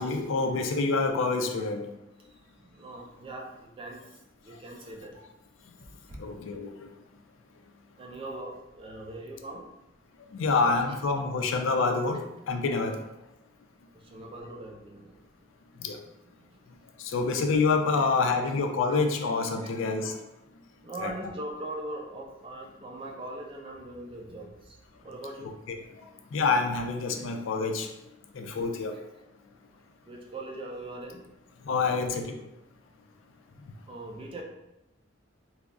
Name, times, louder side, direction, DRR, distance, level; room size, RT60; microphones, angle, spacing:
voice 1, 0.0-1.9 6.2-6.9 10.3-12.9 15.8-16.0 17.0-20.1 21.0-21.1 25.7-25.8 26.3-27.9 28.3-28.9 31.7-32.4, left 4 dB, 75° left, 5 dB, 0.4 m, -27 dB
voice 2, 2.7-4.0 4.4-5.2 6.1-6.2 8.0-9.7 10.5-10.7 13.9-15.1 17.2-17.3 18.3-18.5 19.6-19.7 20.8-24.8 25.0-25.5 30.0-31.3 32.1-32.2 33.9-34.4, right 1 dB, 25° right, 1 dB, 0.3 m, -41 dB
2.3 x 2.0 x 3.5 m, 0.90 s
head